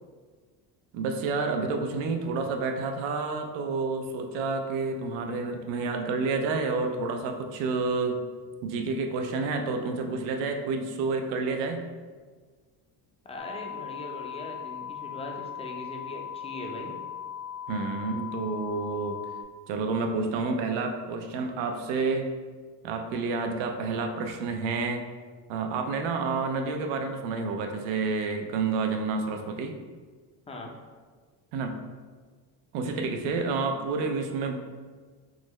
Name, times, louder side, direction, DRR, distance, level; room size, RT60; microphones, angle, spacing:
voice 1, 0.9-8.2 8.6-11.9 17.7-19.2 19.7-22.3 22.8-25.1 25.5-29.8 31.5-31.8 32.7-34.6, right 4 dB, 90° right, 5 dB, 0.5 m, -29 dB
voice 2, 13.3-16.9 30.5-30.7, left 1 dB, 15° left, 0 dB, 0.4 m, -40 dB
sound 1, 13.4-19.4, left 9 dB, 65° left, 0.6 m, -38 dB
3.7 x 2.1 x 3.0 m, 1.5 s
cardioid pair, 105°, 43 cm